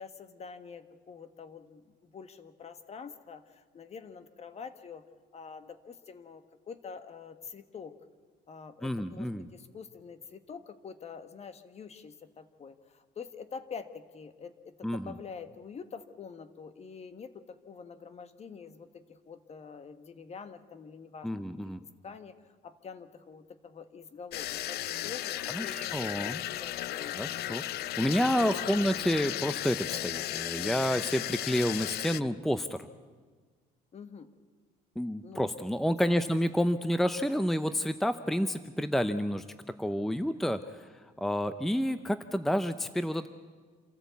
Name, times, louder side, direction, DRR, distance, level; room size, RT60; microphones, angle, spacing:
voice 1, 0.0-5.0 5.3-7.9 8.5-21.4 22.0-22.3 22.6-27.4 28.5-28.8 33.9-34.3 35.2-35.5 36.0-36.2, left 6 dB, 40° left, 11 dB, 1.5 m, -46 dB
voice 2, 8.8-9.5 14.8-15.1 21.2-21.8 25.5-26.4 27.1-32.9 35.0-39.4 39.8-40.8 41.2-43.3, equal, ahead, 11 dB, 0.7 m, -29 dB
sound 1, 24.3-32.2, left 14 dB, 70° left, 0.6 m, -35 dB
27.5 x 14.0 x 8.4 m, 1.5 s
cardioid pair, 110°, 17 cm